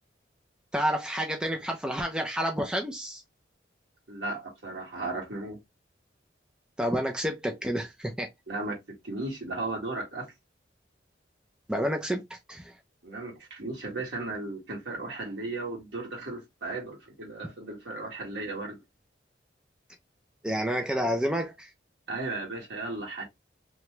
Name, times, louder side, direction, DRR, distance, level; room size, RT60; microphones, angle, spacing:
voice 1, 0.7-3.2 6.8-8.3 11.7-12.2 12.5-12.7 20.4-21.7, equal, 5° right, 0.4 m, -29 dB
voice 2, 4.1-5.6 8.5-10.3 13.0-18.8 22.1-23.2, right 2 dB, 70° right, 1.6 m, -35 dB
3.0 x 2.2 x 3.0 m
head